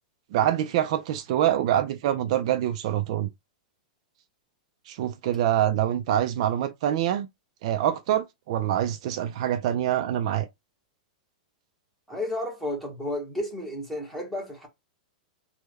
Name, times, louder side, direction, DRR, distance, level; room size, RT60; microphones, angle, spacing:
voice 1, 0.3-3.3 4.9-7.3 7.6-10.5, right 11 dB, 50° right, 0.3 m, -25 dB
voice 2, 12.1-14.7, left 1 dB, 5° left, 1.0 m, -32 dB
3.3 x 2.1 x 3.1 m
supercardioid pair, 165°, 4 cm